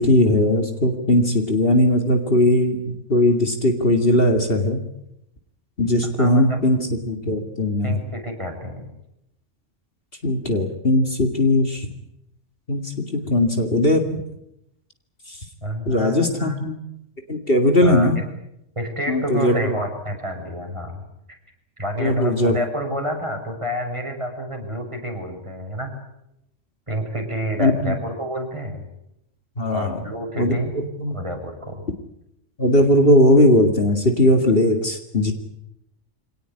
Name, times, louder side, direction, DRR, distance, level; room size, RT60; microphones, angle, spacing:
voice 1, 0.0-4.8 5.8-8.0 10.2-11.9 12.7-14.2 15.3-15.4 15.9-16.8 17.3-18.2 19.1-19.8 22.0-22.6 27.6-28.0 29.6-30.0 30.3-31.2 32.6-35.3, left 1 dB, 50° left, 5 dB, 2.5 m, -19 dB
voice 2, 6.2-6.6 7.8-8.9 15.6-16.6 17.8-18.1 18.8-21.0 21.8-25.9 26.9-28.9 29.7-30.7 31.1-31.8, equal, 25° right, 2 dB, 5.9 m, -29 dB
25.0 x 18.5 x 9.9 m, 0.82 s
omnidirectional pair, 1.3 m